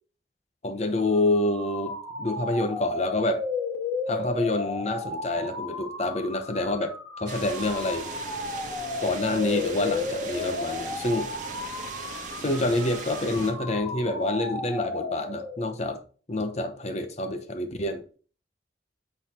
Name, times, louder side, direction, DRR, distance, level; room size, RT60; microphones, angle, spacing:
voice 1, 0.6-3.4 4.1-8.1 9.0-11.3 12.4-16.0 16.3-18.0, left 2 dB, 35° left, 0.9 m, -27 dB
sound 1, 1.1-15.8, left 3 dB, 5° left, 1.6 m, -34 dB
sound 2, 7.3-13.5, right 4 dB, 45° right, 1.5 m, -39 dB
8.3 x 4.1 x 4.4 m
head